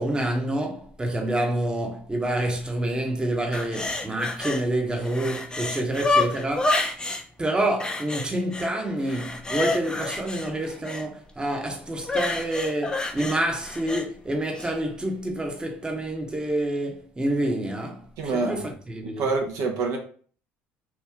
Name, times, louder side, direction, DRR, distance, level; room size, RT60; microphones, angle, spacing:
voice 1, 0.0-6.8 7.4-18.1 18.3-19.2, right 1 dB, 15° right, 0.9 m, -28 dB
sound 1, 3.5-4.6 5.0-7.2 7.8-8.7 9.0-11.0 12.0-14.0 14.5-14.7, left 3 dB, 15° left, 0.6 m, -28 dB
voice 2, 18.2-18.7 19.0-20.0, right 4 dB, 65° right, 0.8 m, -26 dB
3.0 x 2.6 x 3.5 m
supercardioid pair, 75°, 6 cm